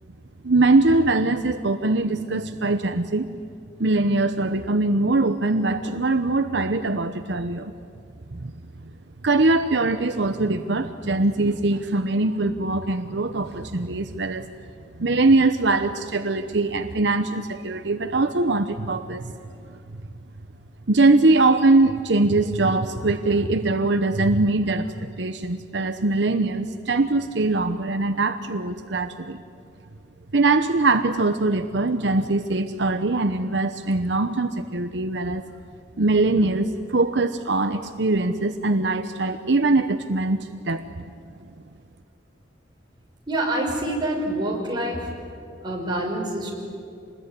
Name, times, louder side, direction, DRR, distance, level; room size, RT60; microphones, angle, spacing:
voice 1, 0.4-3.3 3.8-7.7 8.3-8.5 9.2-14.5 15.0-19.3 19.7-19.8 20.9-29.4 30.3-35.4 36.0-41.0, right 2 dB, 75° right, 9 dB, 1.0 m, -22 dB
voice 2, 43.3-45.1 45.6-46.5, right 1 dB, 25° right, -1 dB, 6.1 m, -26 dB
27.0 x 20.5 x 9.8 m, 2.5 s
head